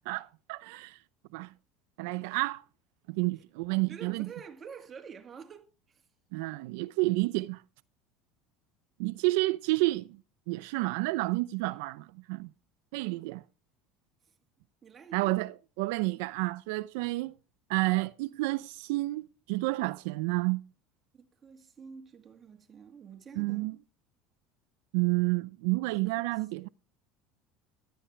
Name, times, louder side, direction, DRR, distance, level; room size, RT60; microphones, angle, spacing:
voice 1, 0.1-1.0 1.3-1.5 2.0-2.6 3.1-4.3 6.3-7.6 9.0-10.2 10.5-12.5 12.9-13.4 15.1-17.4 17.7-20.6 23.4-23.8 24.9-26.7, right 22 dB, 80° right, 0.5 m, -30 dB
voice 2, 3.9-6.0 14.8-15.3 21.1-23.8 25.9-26.5, right 6 dB, 25° right, 2.3 m, -48 dB
16.0 x 11.5 x 3.3 m
supercardioid pair, 130°, 0 cm